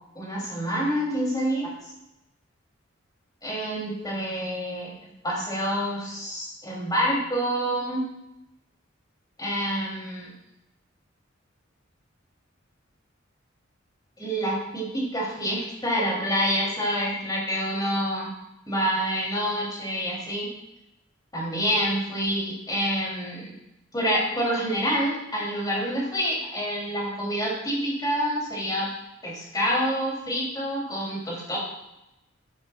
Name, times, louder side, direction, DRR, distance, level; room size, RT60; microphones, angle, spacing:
voice 1, 0.1-1.7 3.4-8.0 9.4-10.3 14.2-18.3 18.7-20.5 21.3-23.5 23.9-28.9 29.2-31.6, equal, 20° left, -4 dB, 6.0 m, -27 dB
14.5 x 14.5 x 3.3 m, 0.89 s
head